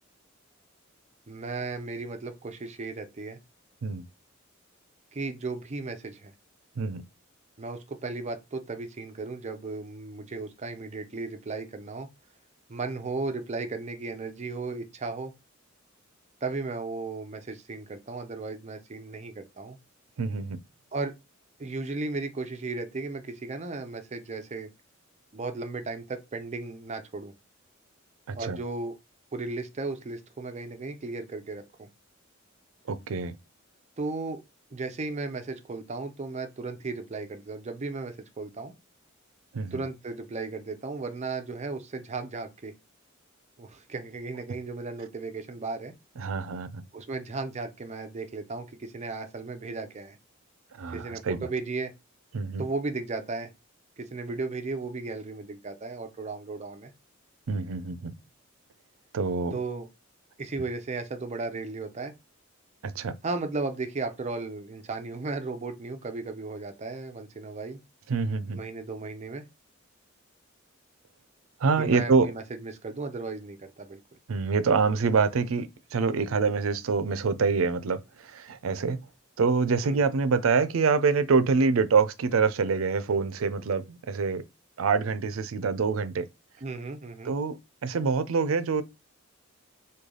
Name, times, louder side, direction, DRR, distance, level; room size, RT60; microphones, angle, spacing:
voice 1, 1.3-3.4 5.1-6.3 7.6-12.1 12.7-15.3 16.4-19.8 20.9-21.1 21.6-24.7 25.3-27.3 28.3-29.0 29.3-31.9 34.0-34.4 34.7-38.7 39.7-42.7 43.6-45.9 46.9-50.2 50.9-51.9 52.6-53.5 54.0-56.9 59.5-59.9 60.4-62.1 63.2-67.8 68.5-69.4 71.8-74.0 79.8-80.0 86.6-87.3, right 3 dB, 35° right, 0.5 m, -35 dB
voice 2, 20.2-20.6 28.3-28.6 32.9-33.4 39.5-39.8 46.2-46.8 50.8-51.5 52.3-52.6 57.5-58.1 59.1-59.5 62.8-63.1 68.1-68.6 71.6-72.3 74.3-79.0 79.4-84.4 84.8-86.3 87.2-88.8, right 4 dB, 85° right, 0.4 m, -26 dB
3.2 x 2.3 x 3.7 m
head